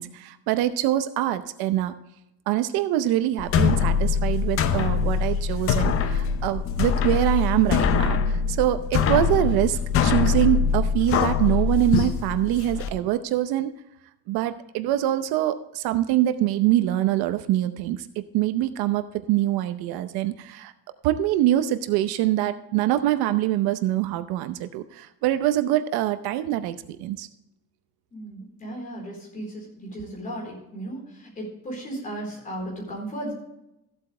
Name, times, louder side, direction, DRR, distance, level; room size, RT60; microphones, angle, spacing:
voice 1, 0.0-1.9 2.5-13.7 14.3-20.7 21.0-27.3, right 13 dB, 70° right, 11 dB, 0.8 m, -24 dB
sound 1, 3.4-12.9, left 6 dB, 35° left, 0.6 m, -23 dB
voice 2, 28.1-29.7 29.9-31.0 31.4-33.3, right 1 dB, 20° left, -2 dB, 4.1 m, -35 dB
14.5 x 8.1 x 3.3 m, 0.88 s
cardioid pair, 180°, 38 cm